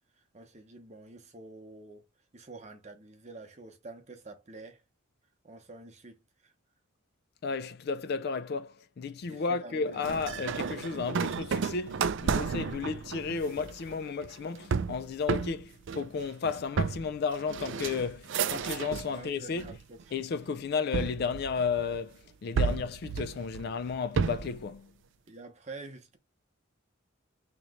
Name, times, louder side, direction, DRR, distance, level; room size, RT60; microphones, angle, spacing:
voice 1, 0.1-2.1 2.3-4.8 5.4-6.5 9.3-10.1 19.1-20.1 25.3-26.2, right 3 dB, 35° right, 0.8 m, -48 dB
voice 2, 7.4-19.7 20.1-24.9, left 5 dB, 50° left, 0.3 m, -33 dB
sound 1, 10.0-19.2 19.6-20.2 20.9-22.0 22.6-24.6, right 6 dB, 65° right, 0.4 m, -32 dB
3.1 x 3.0 x 3.6 m
head